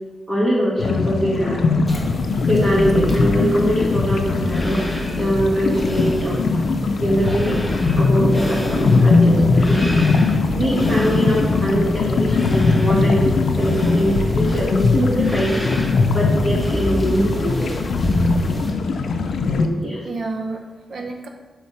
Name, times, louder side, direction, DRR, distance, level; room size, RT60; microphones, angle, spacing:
voice 1, 0.3-1.7 2.5-4.8 5.1-6.4 7.0-10.0 10.6-13.3 13.6-15.6 16.1-17.7 19.5-20.0 20.9-21.0, equal, 25° right, -6 dB, 2.3 m, -22 dB
sound 1, 0.8-19.7, left 4 dB, 90° left, 0.5 m, -20 dB
sound 2, 1.9-18.7, equal, 5° left, 1.1 m, -28 dB
voice 2, 10.2-10.5 16.0-16.1 20.0-21.3, right 3 dB, 60° right, 3 dB, 0.9 m, -31 dB
7.6 x 3.6 x 5.8 m, 1.3 s
wide cardioid pair, 140°, 0 cm